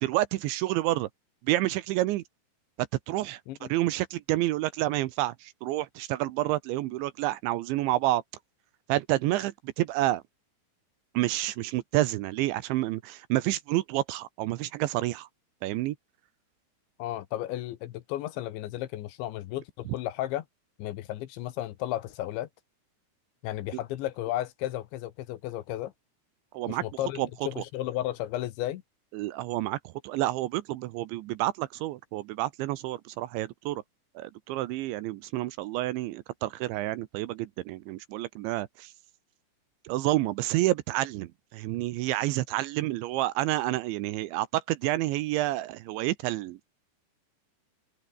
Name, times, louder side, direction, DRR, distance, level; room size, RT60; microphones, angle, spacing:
voice 1, 0.0-1.1 1.4-2.2 3.1-3.4 3.7-8.2 8.9-10.2 11.1-15.3 15.6-16.0 26.5-26.8 27.2-27.3 27.6-27.7 29.1-33.8 34.2-38.9 39.8-46.7, right 16 dB, 75° right, 3.0 m, -29 dB
voice 2, 17.0-20.4 20.8-22.5 23.4-25.9 26.7-28.8, left 14 dB, 75° left, 3.3 m, -34 dB
open air
omnidirectional pair, 5.8 m